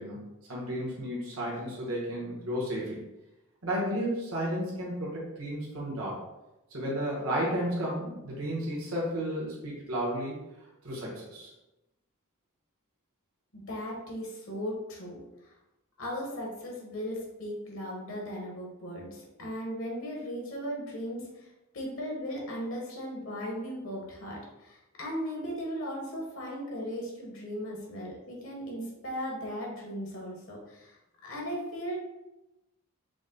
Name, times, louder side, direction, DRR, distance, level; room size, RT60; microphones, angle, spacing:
voice 1, 0.0-3.0 3.6-6.2 6.7-10.4 10.8-11.5, equal, 75° right, -5 dB, 1.2 m, -33 dB
voice 2, 13.5-15.5 16.0-21.5 21.7-32.0, equal, 65° left, -2 dB, 1.2 m, -37 dB
5.0 x 2.2 x 3.8 m, 0.97 s
head